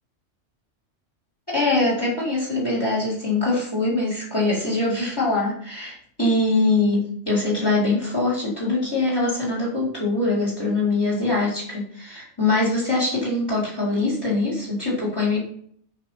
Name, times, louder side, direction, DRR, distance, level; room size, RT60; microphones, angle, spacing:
voice 1, 1.5-15.4, left 2 dB, 20° left, -5 dB, 4.3 m, -23 dB
13.0 x 5.7 x 4.5 m, 0.62 s
omnidirectional pair, 1.2 m